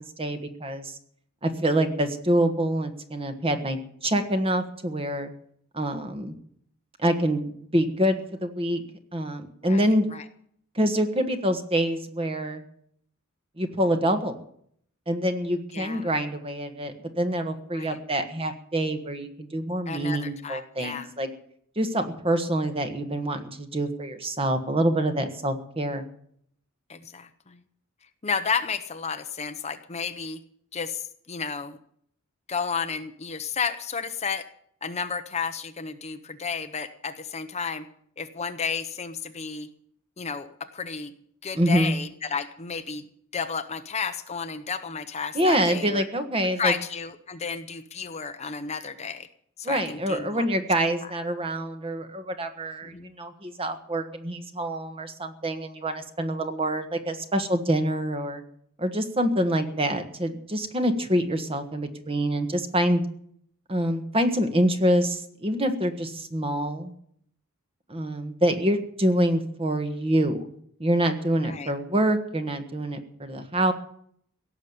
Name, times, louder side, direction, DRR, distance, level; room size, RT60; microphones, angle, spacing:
voice 1, 0.2-0.9 1.4-5.3 5.7-6.3 7.0-8.8 9.1-10.1 10.7-12.6 13.6-14.3 15.1-21.3 21.7-26.0 41.5-42.0 45.3-46.7 49.6-58.4 58.8-63.0 63.7-66.9 67.9-70.5 70.8-73.7, right 1 dB, 25° right, 7 dB, 1.5 m, -26 dB
voice 2, 15.7-16.1 17.7-18.0 19.9-21.1 26.9-27.6 28.2-30.4 30.7-31.8 32.5-34.4 34.8-37.8 38.2-39.7 40.2-41.1 41.4-43.0 43.3-46.0 46.6-49.3 49.6-50.4 52.8-53.1 71.4-71.7, left 5 dB, 30° left, 9 dB, 0.8 m, -32 dB
17.0 x 7.2 x 9.5 m, 0.66 s
head